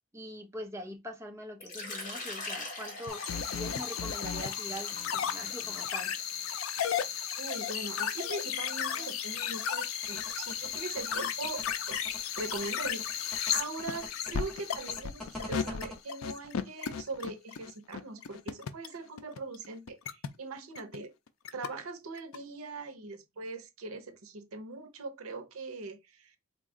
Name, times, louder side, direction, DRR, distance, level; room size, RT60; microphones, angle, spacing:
voice 1, 0.1-6.1, equal, 15° right, 0.7 m, -43 dB
Water / Liquid, 1.6-7.1, left 3 dB, 40° left, 1.1 m, -43 dB
sound 1, 3.1-20.3 20.6-21.0 21.3-21.7 22.2-22.4, left 8 dB, 75° left, 0.4 m, -34 dB
voice 2, 7.4-12.0 12.4-21.1 21.5-26.3, right 3 dB, 90° right, 0.7 m, -41 dB
sound 2, 10.0-15.9, left 2 dB, ahead, 1.4 m, -44 dB
4.0 x 2.3 x 3.6 m
head